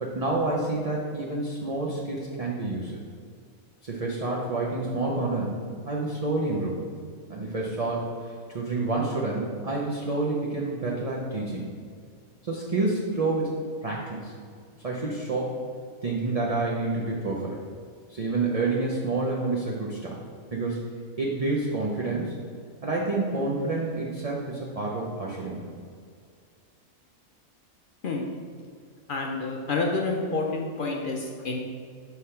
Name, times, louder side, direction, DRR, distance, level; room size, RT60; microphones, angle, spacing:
voice 1, 0.0-3.0 3.8-5.5 5.9-6.8 7.3-11.6 12.4-13.5 13.8-14.3 14.8-15.6 16.0-17.6 18.1-20.2 20.5-20.8 21.2-22.3 22.8-25.6, right 2 dB, 40° right, -4 dB, 0.5 m, -28 dB
voice 2, 29.1-31.6, left 3 dB, 60° left, 0 dB, 0.5 m, -28 dB
5.7 x 3.3 x 5.6 m, 2.1 s
omnidirectional pair, 1.5 m